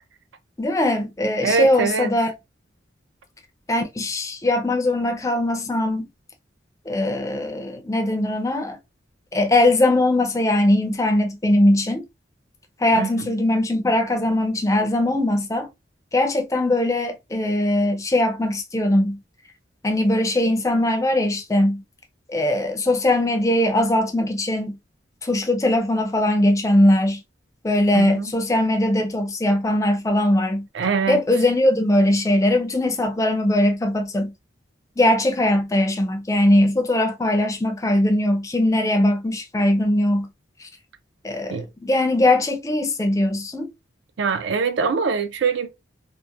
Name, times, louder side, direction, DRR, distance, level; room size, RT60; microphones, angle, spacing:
voice 1, 0.6-2.3 3.7-6.1 6.9-8.8 9.3-12.0 12.8-15.7 16.1-19.2 19.8-21.8 22.3-24.8 25.2-27.2 27.6-30.7 31.1-34.3 35.0-40.3 40.6-40.7 41.2-43.7, left 1 dB, 15° left, 0.4 m, -20 dB
voice 2, 1.4-2.1 12.9-13.3 27.9-28.3 30.7-31.2 41.5-41.7 44.2-45.7, right 5 dB, 70° right, 0.4 m, -23 dB
2.8 x 2.1 x 2.2 m
head